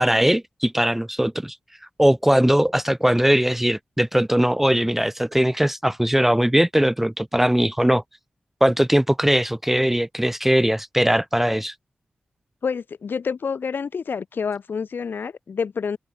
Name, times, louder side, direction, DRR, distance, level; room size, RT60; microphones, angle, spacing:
voice 1, 0.0-1.6 2.0-8.0 8.6-11.7, equal, 5° right, 0.4 m, -20 dB
voice 2, 12.6-16.0, left 6 dB, 80° left, 5.0 m, -28 dB
open air
wide cardioid pair, 80°, 3 cm